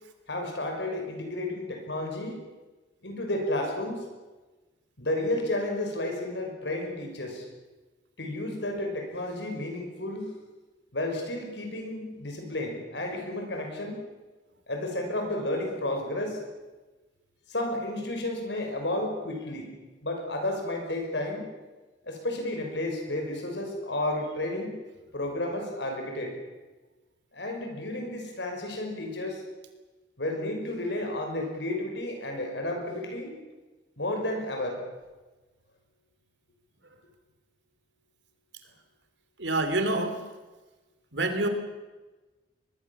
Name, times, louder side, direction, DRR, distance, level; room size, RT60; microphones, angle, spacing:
voice 1, 0.3-2.4 3.0-4.0 5.0-7.5 8.2-10.4 10.9-14.0 14.7-16.4 17.5-19.7 20.0-21.5 22.0-24.8 25.1-26.3 27.3-29.4 30.2-33.4 34.0-34.8, left 1 dB, 70° left, 3 dB, 6.1 m, -32 dB
voice 2, 39.4-40.2 41.1-41.5, right 2 dB, 80° right, 8 dB, 3.2 m, -26 dB
23.0 x 21.5 x 7.3 m, 1.2 s
head